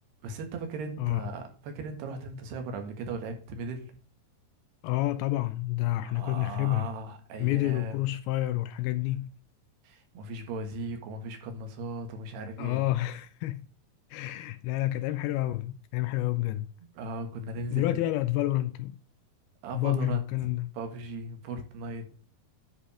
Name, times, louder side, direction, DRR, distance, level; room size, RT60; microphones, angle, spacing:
voice 1, 0.2-3.9 6.0-8.0 9.8-12.9 17.0-18.0 19.6-20.2 20.7-22.1, right 2 dB, 75° right, 3.7 m, -37 dB
voice 2, 4.8-6.9 7.4-9.3 12.6-13.7 14.1-16.7 17.7-19.0 19.7-20.7, left 15 dB, 80° left, 2.3 m, -29 dB
10.0 x 5.3 x 4.9 m
omnidirectional pair, 4.7 m